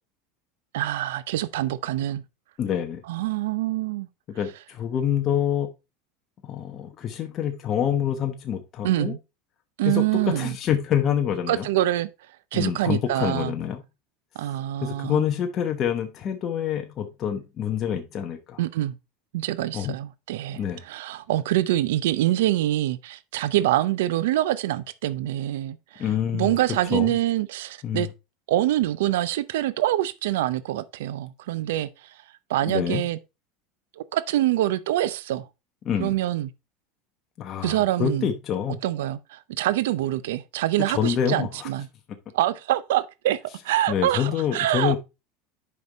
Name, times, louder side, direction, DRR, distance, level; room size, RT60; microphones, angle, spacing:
voice 1, 0.7-2.2 3.1-4.1 8.8-9.2 9.8-10.5 11.5-12.1 12.5-13.5 14.4-15.2 18.6-19.0 19.3-26.0 26.3-28.1 28.5-32.2 32.5-33.2 34.0-35.5 36.0-36.5 37.6-38.3 38.8-41.9 42.3-43.4 43.6-45.0, right 14 dB, 90° right, 0.5 m, -25 dB
voice 2, 2.6-3.0 4.3-5.7 6.4-9.1 9.8-11.7 12.5-13.8 14.8-18.6 19.7-20.0 20.5-20.8 26.0-26.5 26.9-27.2 27.8-28.1 32.7-33.0 35.8-36.2 37.4-38.8 40.9-41.7 43.9-45.0, left 9 dB, 35° left, 0.9 m, -26 dB
6.5 x 5.3 x 4.1 m
supercardioid pair, 135°, 0 cm